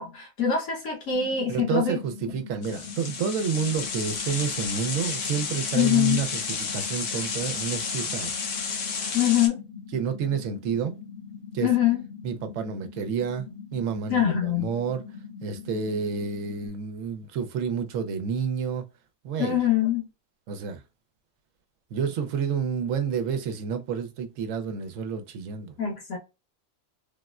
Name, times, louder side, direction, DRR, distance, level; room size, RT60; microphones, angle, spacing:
voice 1, 0.0-2.0 5.7-6.2 9.1-9.6 11.6-12.0 14.1-14.7 19.4-20.1 25.8-26.2, left 9 dB, 90° left, 1.5 m, -24 dB
sound 1, 1.1-16.7, left 6 dB, 50° left, 1.2 m, -43 dB
voice 2, 1.5-8.3 9.9-11.0 11.5-11.7 12.2-15.0 15.4-18.8 19.2-19.6 20.5-20.8 21.9-25.7, right 6 dB, 75° right, 1.0 m, -29 dB
sound 2, 2.6-9.5, left 5 dB, 70° left, 1.0 m, -32 dB
3.5 x 2.1 x 2.3 m
omnidirectional pair, 1.4 m